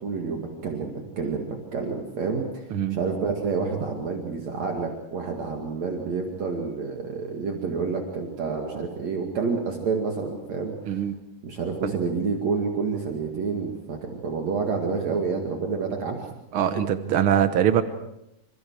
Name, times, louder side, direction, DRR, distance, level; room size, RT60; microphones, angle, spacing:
voice 1, 0.0-11.0 11.4-16.3, right 4 dB, 55° right, 1 dB, 3.4 m, -29 dB
voice 2, 10.9-11.2 11.8-11.9 16.5-17.8, right 9 dB, 75° right, 9 dB, 1.2 m, -22 dB
28.5 x 26.5 x 4.8 m, 0.85 s
omnidirectional pair, 3.8 m